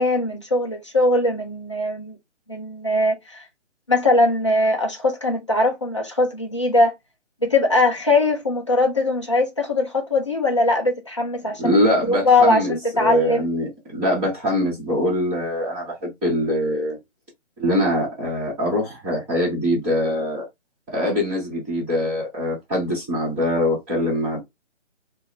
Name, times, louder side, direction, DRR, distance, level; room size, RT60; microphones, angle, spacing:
voice 1, 0.0-2.2 2.5-3.4 3.9-6.9 7.4-11.8 12.1-13.5, left 2 dB, 25° left, 0.4 m, -20 dB
voice 2, 11.6-17.0 17.6-20.4 20.9-24.4, left 1 dB, 5° right, 1.0 m, -23 dB
2.2 x 2.2 x 3.6 m
hypercardioid pair, 160°, 36 cm